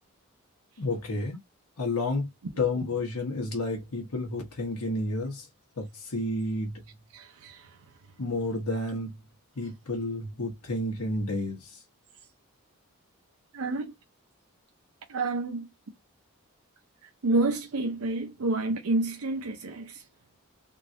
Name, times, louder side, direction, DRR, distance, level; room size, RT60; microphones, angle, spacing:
voice 1, 0.8-1.4 1.8-2.3 2.6-5.5 5.8-6.8 8.2-9.2 9.6-11.8, left 2 dB, 85° left, 1.0 m, -31 dB
voice 2, 7.1-7.8 13.5-13.9 15.1-15.7 17.2-20.0, right 2 dB, 85° right, 0.6 m, -29 dB
3.7 x 2.4 x 2.6 m
head